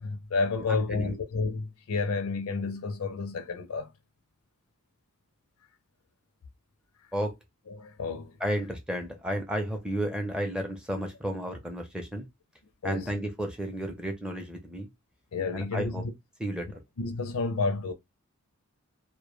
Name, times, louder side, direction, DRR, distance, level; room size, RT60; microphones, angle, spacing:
voice 1, 0.0-3.9 7.7-8.4 12.8-13.2 15.3-16.1 17.0-17.9, left 4 dB, 75° left, 0.5 m, -30 dB
voice 2, 0.7-1.2 7.1-7.3 8.4-12.3 12.8-14.9 15.5-16.0 16.4-16.8, equal, 5° right, 0.5 m, -32 dB
2.1 x 2.1 x 3.0 m
head